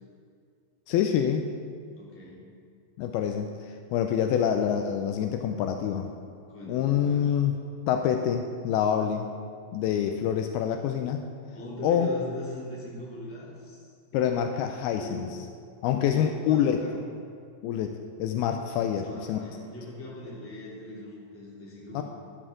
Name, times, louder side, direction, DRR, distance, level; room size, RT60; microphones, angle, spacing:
voice 1, 0.9-1.5 3.0-6.1 6.7-7.6 7.9-9.3 9.7-11.2 11.8-12.1 14.1-15.3 15.8-16.8 17.6-19.4 21.9-22.0, left 9 dB, 80° left, 5 dB, 2.4 m, -26 dB
voice 2, 1.9-2.4 6.5-7.3 11.5-13.8 15.0-15.2 15.9-17.0 18.9-22.0, equal, 5° left, -7 dB, 2.0 m, -40 dB
12.5 x 12.5 x 3.8 m, 2.2 s
omnidirectional pair, 4.7 m